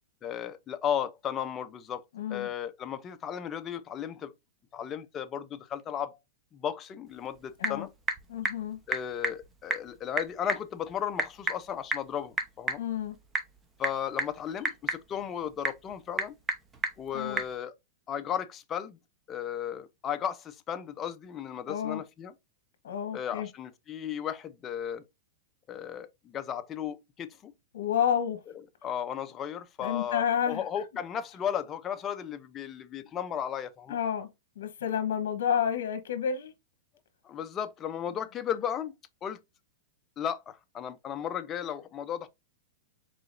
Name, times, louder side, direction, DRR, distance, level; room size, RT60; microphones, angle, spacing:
voice 1, 0.2-2.0 2.3-4.3 4.7-6.2 6.5-7.9 8.9-12.8 13.8-16.3 17.0-17.7 18.1-19.0 19.3-22.3 23.1-25.0 25.7-27.5 28.8-34.0 37.2-38.9 39.2-39.4 40.2-42.3, left 9 dB, 20° left, 0.5 m, -35 dB
voice 2, 2.1-2.5 7.6-7.9 8.3-8.8 12.8-13.2 17.1-17.4 21.7-22.0 22.8-23.5 27.7-28.4 29.8-30.6 33.9-34.3 34.6-36.5, left 8 dB, 75° left, 1.0 m, -30 dB
Typing / Telephone, 7.1-17.6, right 3 dB, 15° right, 0.8 m, -35 dB
4.9 x 3.9 x 2.5 m
supercardioid pair, 150°, 0 cm